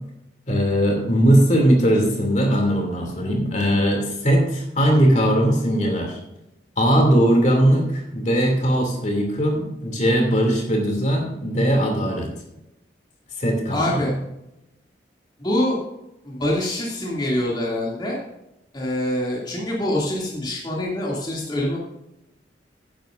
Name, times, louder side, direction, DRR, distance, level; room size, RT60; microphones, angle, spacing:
voice 1, 0.5-6.2 6.8-12.3 13.4-14.1, equal, 40° left, 2 dB, 2.8 m, -19 dB
voice 2, 13.7-14.1 15.4-15.8 16.2-18.2 18.7-21.8, left 1 dB, 25° left, -4 dB, 2.7 m, -25 dB
14.5 x 10.5 x 2.6 m, 0.90 s
head